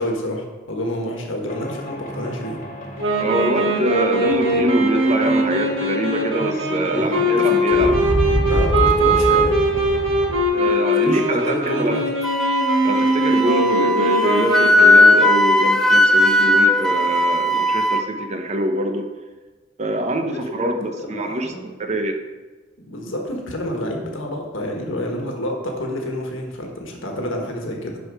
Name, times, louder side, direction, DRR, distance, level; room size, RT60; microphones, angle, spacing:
voice 1, 0.0-2.6 6.9-8.0 8.4-9.5 11.0-12.0 20.3-20.6 21.0-21.6 22.8-28.0, left 1 dB, 80° left, 1 dB, 1.5 m, -28 dB
sound 1, 1.5-10.4, equal, 40° left, 1.6 m, -28 dB
Wind instrument woodwind instrument, 3.0-15.4, equal, 85° right, 1.7 m, -21 dB
voice 2, 3.2-7.9 10.5-12.0 12.8-19.1 19.8-21.5 21.8-22.2, right 1 dB, 35° right, 5 dB, 0.9 m, -24 dB
Wind instrument woodwind instrument 2, 12.2-18.0, left 1 dB, ahead, 0.4 m, -17 dB
11.5 x 4.7 x 4.8 m, 1.3 s
head